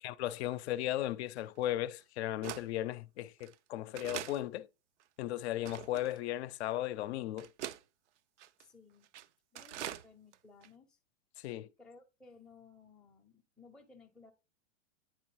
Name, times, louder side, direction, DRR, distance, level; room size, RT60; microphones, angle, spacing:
voice 1, 0.0-4.7 5.2-7.5 11.4-11.7, left 13 dB, 65° left, 0.5 m, -36 dB
sound 1, 0.8-0.9 1.6-1.7 2.4-2.7 3.4-3.6 4.0-4.4 5.0-5.1 5.7-6.2 6.9-7.0 7.4-7.8 8.4-8.6 9.0-9.3 9.6-10.1 10.3-10.4 10.6-10.7, right 12 dB, 80° right, 0.5 m, -43 dB
voice 2, 8.6-9.1 9.5-11.0 11.8-14.3, left 4 dB, ahead, 0.5 m, -58 dB
9.2 x 3.9 x 3.1 m
hypercardioid pair, 125°, 35 cm